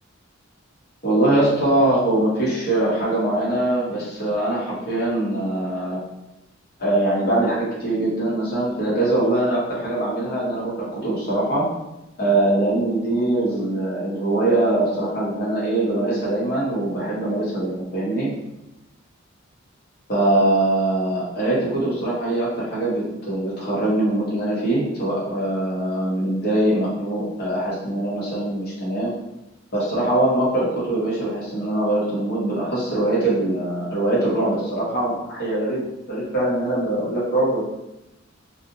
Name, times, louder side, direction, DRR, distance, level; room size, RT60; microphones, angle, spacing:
voice 1, 1.0-6.0 6.8-11.7 12.2-18.3 20.1-29.1 29.7-35.8 36.1-37.6, right 1 dB, 50° left, -7 dB, 0.8 m, -22 dB
2.5 x 2.1 x 2.6 m, 0.91 s
head